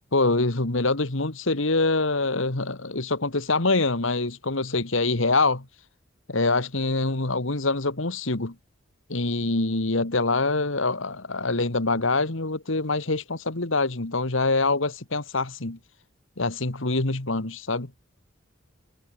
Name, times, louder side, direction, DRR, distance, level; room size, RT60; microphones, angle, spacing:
voice 1, 0.1-5.7 6.3-8.5 9.1-15.8 16.4-17.9, left 3 dB, 70° left, 2.0 m, -25 dB
head